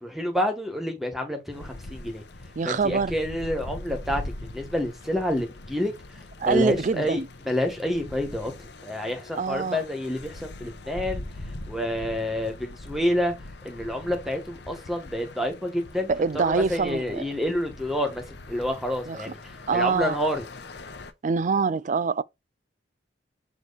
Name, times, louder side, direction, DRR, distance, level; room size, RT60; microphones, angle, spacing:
voice 1, 0.0-2.2 2.6-5.9 6.4-8.5 8.8-11.2 11.7-13.3 13.6-20.4, left 1 dB, ahead, 1.7 m, -28 dB
sound 1, 1.5-21.1, left 2 dB, 65° left, 1.0 m, -42 dB
voice 2, 2.6-3.1 6.4-7.3 9.3-9.8 16.1-17.2 19.1-19.2 19.7-20.2 21.2-22.2, right 5 dB, 45° right, 0.4 m, -25 dB
8.0 x 3.2 x 4.2 m
head